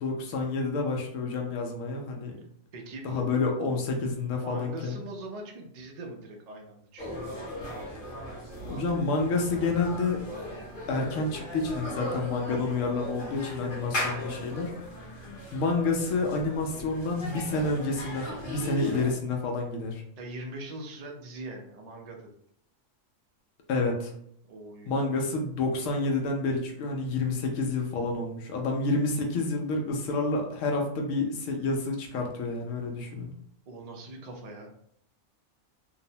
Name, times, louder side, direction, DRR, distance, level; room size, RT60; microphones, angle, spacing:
voice 1, 0.0-2.4 3.0-5.0 8.1-8.3 8.6-10.2 10.9-14.7 15.1-20.0 23.7-24.1 24.9-33.3, left 3 dB, 80° left, 1 dB, 1.0 m, -29 dB
voice 2, 2.7-3.3 4.2-7.2 13.0-13.7 20.2-22.3 24.5-24.9 27.4-27.6 28.9-29.0 33.7-34.7, right 2 dB, 70° right, 2 dB, 0.3 m, -42 dB
sound 1, 7.0-19.1, left 1 dB, 45° left, 1.0 m, -38 dB
2.9 x 2.0 x 2.7 m, 0.68 s
omnidirectional pair, 1.4 m